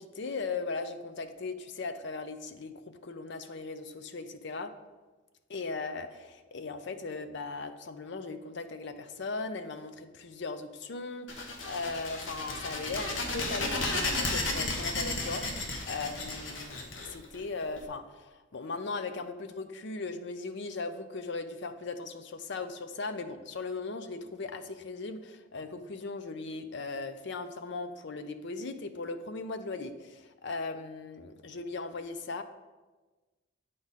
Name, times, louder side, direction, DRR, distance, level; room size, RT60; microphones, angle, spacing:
voice 1, 0.0-4.8 5.5-32.4, left 3 dB, 65° left, 10 dB, 0.6 m, -38 dB
sound 1, 11.3-17.8, left 2 dB, 85° left, 1.1 m, -33 dB
8.5 x 5.0 x 4.1 m, 1.2 s
head